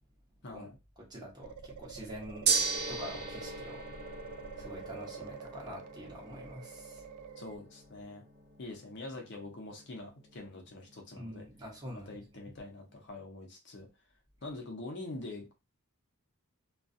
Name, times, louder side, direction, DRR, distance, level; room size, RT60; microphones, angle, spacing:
voice 1, 0.4-0.8 7.4-8.2 8.6-11.4 12.1-13.9 14.4-15.5, left 2 dB, 50° left, 1 dB, 0.6 m, -44 dB
voice 2, 1.0-2.5 2.9-3.8 4.5-7.1 11.1-12.5, equal, 20° right, -4 dB, 0.9 m, -46 dB
A message from Outerspace, 1.4-7.6, right 6 dB, 80° right, 0.3 m, -47 dB
Gong, 2.5-12.7, right 5 dB, 45° right, 0.7 m, -39 dB
2.3 x 2.2 x 2.5 m, 0.27 s
head